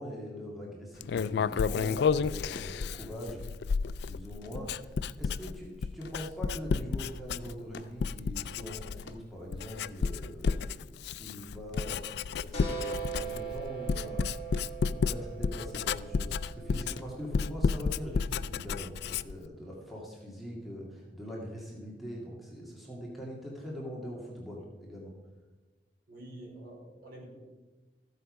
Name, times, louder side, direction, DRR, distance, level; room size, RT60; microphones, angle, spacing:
voice 1, 0.0-3.4 4.0-25.1, equal, ahead, -4 dB, 2.0 m, -42 dB
Writing, 1.0-7.7 8.0-9.2 9.5-19.5, left 5 dB, 70° left, 0.3 m, -32 dB
sound 1, 2.5-17.8 19.0-19.2, left 3 dB, 90° left, 0.9 m, -53 dB
sound 2, 12.5-18.0, right 6 dB, 35° left, 2.7 m, -41 dB
voice 2, 26.1-27.2, right 1 dB, 55° right, -3 dB, 4.6 m, -47 dB
14.0 x 8.1 x 5.3 m, 1.2 s
head